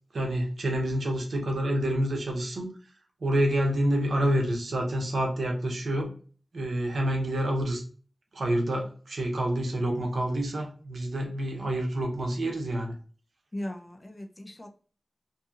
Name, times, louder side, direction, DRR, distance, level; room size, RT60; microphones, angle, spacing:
voice 1, 0.1-2.7 3.2-6.1 6.5-7.8 8.3-12.9, right 1 dB, 90° right, 1 dB, 0.7 m, -28 dB
voice 2, 13.5-14.7, left 1 dB, 30° left, 3 dB, 0.5 m, -38 dB
2.7 x 2.6 x 2.4 m, 0.40 s
wide cardioid pair, 90°, 0 cm